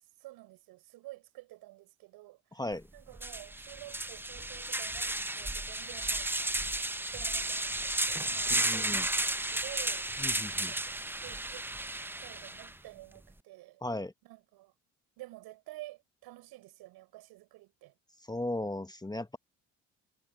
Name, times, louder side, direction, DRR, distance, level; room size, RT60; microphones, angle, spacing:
voice 1, 0.2-2.6 2.9-6.5 7.1-11.7 12.0-13.8 14.2-14.7 15.2-17.9, right 18 dB, 75° right, 7.3 m, -50 dB
voice 2, 2.5-2.9 8.5-9.0 10.2-10.7 13.8-14.1 18.3-19.4, left 1 dB, 10° left, 1.3 m, -36 dB
sound 1, 2.7-2.8 3.2-12.7, right 1 dB, 5° right, 0.8 m, -33 dB
hypercardioid pair, 60°, 38 cm